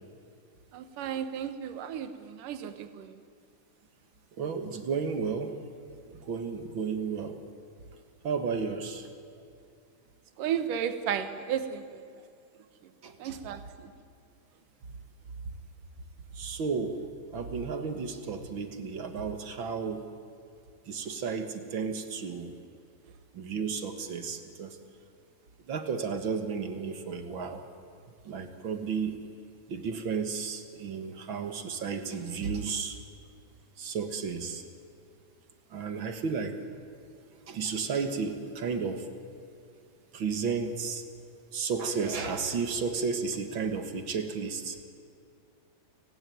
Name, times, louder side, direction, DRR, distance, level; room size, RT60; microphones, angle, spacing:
voice 1, 0.7-3.2 10.4-12.0 13.2-13.9, right 8 dB, 85° right, 11 dB, 2.8 m, -34 dB
voice 2, 4.4-5.5 6.2-7.4 8.2-9.1 13.0-13.4 16.4-17.0 17.3-20.0 20.9-22.6 23.3-24.8 25.7-27.6 28.3-29.2 29.7-33.0 33.8-34.6 35.7-36.6 37.5-39.1 40.1-41.0 41.5-44.8, right 5 dB, 45° right, 8 dB, 2.0 m, -33 dB
29.5 x 18.0 x 9.3 m, 2.4 s
omnidirectional pair, 3.6 m